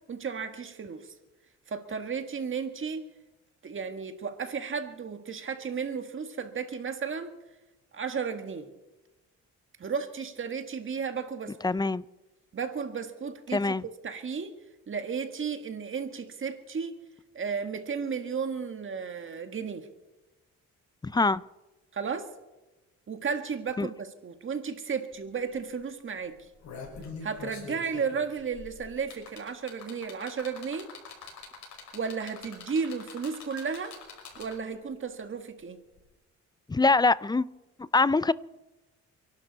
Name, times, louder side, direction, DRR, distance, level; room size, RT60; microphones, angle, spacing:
voice 1, 0.1-1.1 1.7-3.0 3.6-7.4 7.9-8.7 9.8-11.8 12.5-14.5 14.9-17.0 17.3-19.9 21.9-22.3 23.1-26.3 27.2-30.9 31.9-34.0 34.4-35.8, right 6 dB, 40° right, 1.8 m, -34 dB
voice 2, 11.6-12.0 13.5-13.8 21.0-21.4 23.8-23.9 36.7-37.5 37.8-38.3, left 3 dB, 15° left, 0.5 m, -24 dB
sound 1, 25.1-25.2 25.5-25.8 26.3-34.8 35.9-36.0, left 5 dB, 65° left, 5.7 m, -44 dB
28.5 x 11.5 x 4.1 m
cardioid pair, 90°, 30 cm